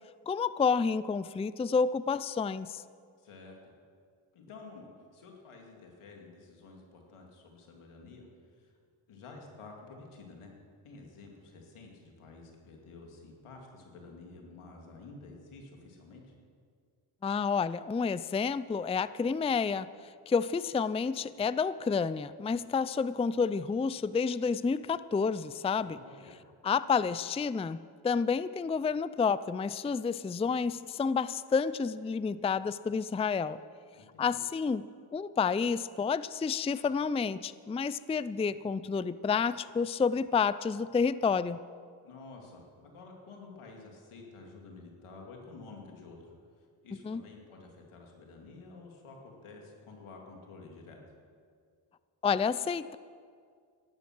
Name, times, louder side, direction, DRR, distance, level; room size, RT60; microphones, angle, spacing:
voice 1, 0.3-2.8 17.2-26.0 26.6-33.6 34.2-34.8 35.1-41.6 47.0-47.2 52.2-53.0, left 5 dB, 15° left, 16 dB, 0.4 m, -30 dB
voice 2, 3.2-3.7 4.3-8.3 8.6-8.7 9.1-10.5 10.8-16.3 25.8-26.4 33.9-34.4 42.0-46.3 46.8-51.0, left 3 dB, 85° left, 1 dB, 2.7 m, -50 dB
15.0 x 12.0 x 6.1 m, 2.1 s
supercardioid pair, 45°, 49 cm